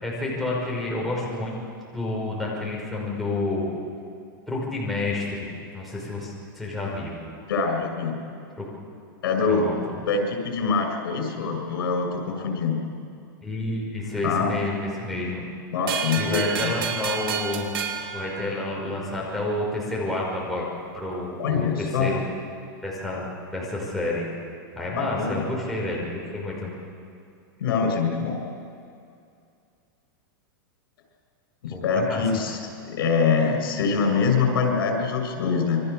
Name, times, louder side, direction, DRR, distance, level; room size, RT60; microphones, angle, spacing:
voice 1, 0.0-1.6 1.9-3.7 4.5-5.5 5.7-7.2 8.6-8.7 9.5-9.7 13.4-15.4 16.2-17.7 18.1-20.7 20.9-22.2 22.8-24.3 24.8-26.7 31.7-32.2, left 2 dB, ahead, -5 dB, 5.5 m, -29 dB
voice 2, 7.5-8.1 9.2-12.8 14.2-14.6 15.7-16.7 21.4-22.1 25.0-25.4 27.6-28.4 31.6-32.6 32.8-35.8, left 5 dB, 80° left, 3 dB, 6.9 m, -24 dB
sound 1, 15.9-19.1, right 8 dB, 80° right, 3.4 m, -31 dB
28.0 x 24.0 x 7.0 m, 2.4 s
supercardioid pair, 165°, 12 cm